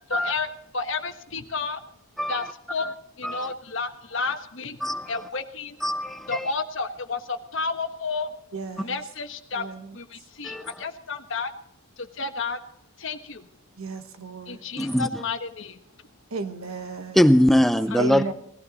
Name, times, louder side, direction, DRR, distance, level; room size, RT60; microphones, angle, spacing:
voice 1, 0.1-1.8 2.3-2.9 3.2-4.8 5.1-5.8 6.3-8.3 8.8-11.5 12.0-12.6 13.0-13.5 14.5-15.8 17.9-18.2, left 4 dB, 60° left, 7 dB, 1.3 m, -31 dB
voice 2, 4.8-5.1 5.8-6.5 8.8-8.9 10.4-10.8 14.8-15.2 17.1-18.3, equal, ahead, 11 dB, 0.5 m, -22 dB
voice 3, 8.5-8.9 9.6-9.8 13.8-14.6 16.3-17.2 18.0-18.3, right 3 dB, 80° right, 8 dB, 1.3 m, -33 dB
19.0 x 15.0 x 4.1 m, 0.77 s
head